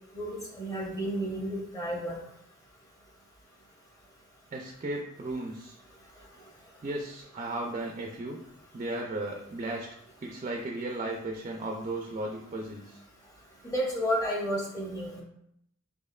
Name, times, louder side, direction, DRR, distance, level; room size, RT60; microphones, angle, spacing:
voice 1, 0.1-2.2 13.6-15.2, equal, 20° left, -2 dB, 0.8 m, -31 dB
voice 2, 4.5-5.8 6.8-8.4 8.7-9.9 10.2-13.0, right 2 dB, 35° right, 2 dB, 0.3 m, -35 dB
4.1 x 2.9 x 2.3 m, 0.75 s
head